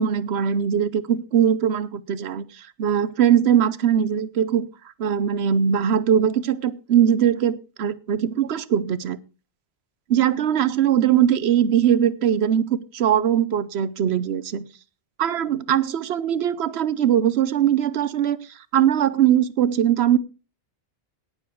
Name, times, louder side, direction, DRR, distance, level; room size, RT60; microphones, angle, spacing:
voice 1, 0.0-2.4 2.8-4.7 5.0-9.2 10.1-14.7 15.2-18.4 18.7-20.2, right 9 dB, 90° right, 17 dB, 1.0 m, -21 dB
17.5 x 6.7 x 4.6 m, 0.33 s
omnidirectional pair, 1.1 m